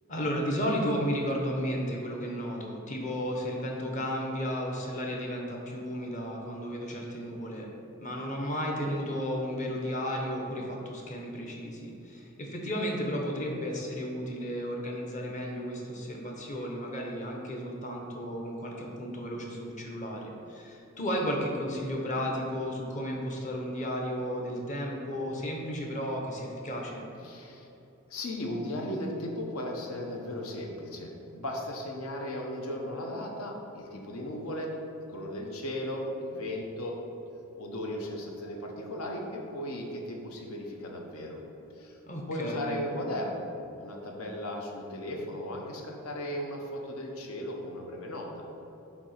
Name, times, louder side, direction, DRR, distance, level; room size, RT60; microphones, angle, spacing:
voice 1, 0.1-7.7 8.0-27.0 42.1-42.8, equal, 35° left, -1 dB, 0.8 m, -33 dB
voice 2, 27.2-27.7 28.1-34.7 35.1-37.0 37.6-41.4 41.8-42.0 42.3-43.5 43.8-48.4, left 1 dB, 75° left, 0 dB, 0.9 m, -36 dB
7.1 x 2.8 x 5.7 m, 2.9 s
head